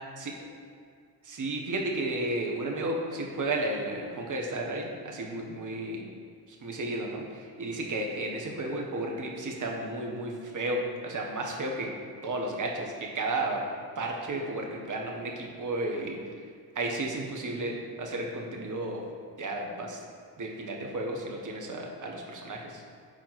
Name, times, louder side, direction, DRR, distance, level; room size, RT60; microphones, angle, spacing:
voice 1, 1.2-6.1 6.5-11.9 12.2-13.6 14.0-16.2 16.7-19.0 19.4-20.0 20.4-22.8, right 2 dB, 40° right, 0 dB, 1.3 m, -33 dB
6.1 x 4.2 x 4.2 m, 2.2 s
hypercardioid pair, 45°, 46 cm